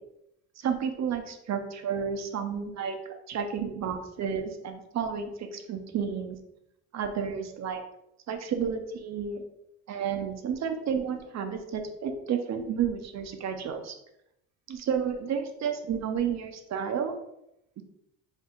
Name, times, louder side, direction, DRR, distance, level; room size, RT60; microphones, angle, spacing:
voice 1, 0.6-3.0 3.3-6.4 6.9-7.8 8.3-9.4 9.9-13.9 14.7-17.2 17.8-17.9, right 7 dB, 45° right, 6 dB, 0.8 m, -31 dB
4.5 x 2.3 x 3.7 m, 0.81 s
supercardioid pair, 75°, 37 cm